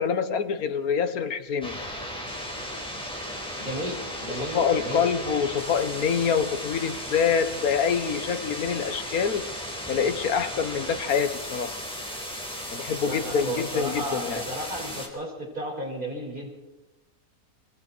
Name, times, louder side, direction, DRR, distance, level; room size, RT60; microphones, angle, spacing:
voice 1, 0.0-1.8 4.3-9.5 9.9-11.8 12.7-14.4, left 6 dB, 80° left, 1.7 m, -26 dB
sound 1, 1.6-15.1, equal, 5° left, 4.4 m, -36 dB
voice 2, 3.6-5.1 13.0-16.5, right 1 dB, 35° right, 5.7 m, -34 dB
26.0 x 22.5 x 4.5 m
omnidirectional pair, 1.5 m